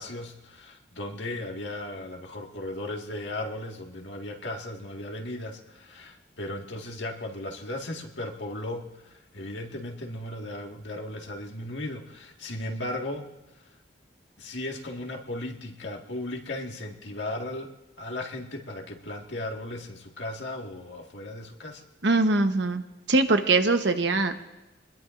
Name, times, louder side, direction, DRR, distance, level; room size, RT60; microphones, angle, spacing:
voice 1, 0.0-13.3 14.4-21.8, left 1 dB, 85° left, 1 dB, 1.8 m, -36 dB
voice 2, 22.0-22.8 23.1-24.4, right 3 dB, 75° right, 7 dB, 1.1 m, -22 dB
25.0 x 20.5 x 2.6 m, 1.0 s
head